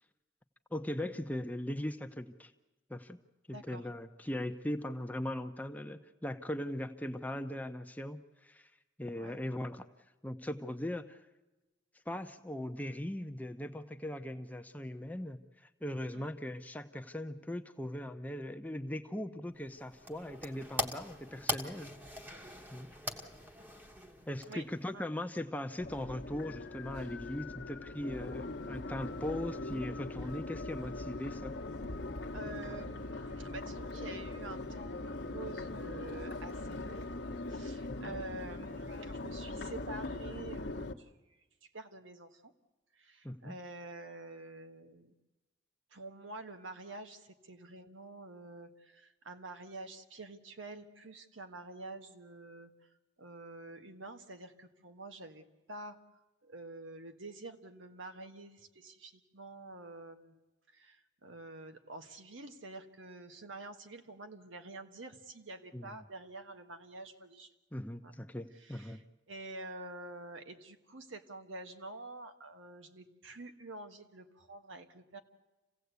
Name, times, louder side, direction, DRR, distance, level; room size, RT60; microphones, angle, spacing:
voice 1, 0.7-2.5 2.9-3.2 3.5-8.7 9.0-9.9 10.2-11.2 12.1-15.4 15.8-22.0 22.7-22.9 24.3-31.5 37.9-38.1 43.2-43.6 65.7-65.9 67.7-69.0, left 1 dB, 10° left, 7 dB, 0.8 m, -39 dB
voice 2, 3.5-3.9 9.1-9.4 16.1-16.3 24.5-24.6 24.9-25.1 32.3-37.1 37.5-41.2 41.7-42.5 42.9-45.1 45.9-52.7 53.2-56.0 56.4-60.4 60.7-67.5 68.0-68.1 68.5-75.2, right 2 dB, 85° right, 7 dB, 1.5 m, -48 dB
sound 1, 19.6-25.0, left 1 dB, 10° right, 1.1 m, -41 dB
Crowd, 25.8-40.9, left 2 dB, 60° left, 1.1 m, -41 dB
sound 2, 26.3-38.3, left 7 dB, 85° left, 0.9 m, -52 dB
27.5 x 16.5 x 8.3 m, 1.1 s
head